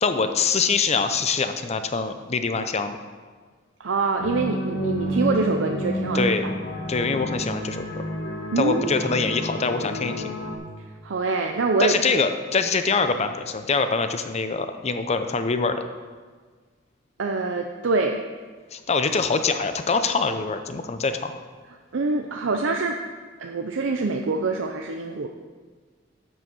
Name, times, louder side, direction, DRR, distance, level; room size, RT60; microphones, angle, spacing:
voice 1, 0.0-3.0 6.1-6.5 6.9-8.0 8.6-10.3 11.8-15.8 18.7-21.4, left 4 dB, 35° left, 8 dB, 0.6 m, -24 dB
voice 2, 3.8-6.5 8.5-9.1 11.0-12.2 17.2-18.2 21.9-23.0 23.4-25.3, right 3 dB, 80° right, 3 dB, 0.6 m, -25 dB
sound 1, 4.2-10.6, equal, 80° left, 1.4 m, -29 dB
9.1 x 6.3 x 6.1 m, 1.5 s
head